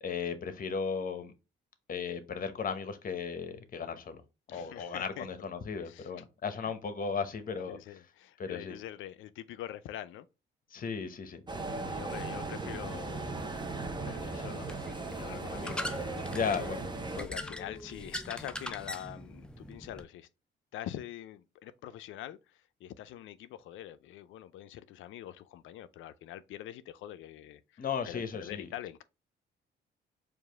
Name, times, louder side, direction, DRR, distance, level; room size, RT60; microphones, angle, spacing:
voice 1, 0.0-1.3 1.9-4.2 4.5-7.8 8.4-8.8 10.7-11.4 16.3-16.9 27.8-28.7, left 6 dB, 45° left, 0.8 m, -35 dB
voice 2, 4.5-5.3 5.8-6.1 6.6-6.7 7.7-10.3 11.7-13.6 14.0-16.7 17.1-20.3 20.7-29.0, left 12 dB, 80° left, 0.4 m, -44 dB
sound 1, 11.5-17.3, right 3 dB, 20° right, 0.7 m, -37 dB
sound 2, 13.1-20.0, left 1 dB, 5° left, 0.4 m, -43 dB
4.7 x 2.5 x 3.4 m
cardioid pair, 90°, 20 cm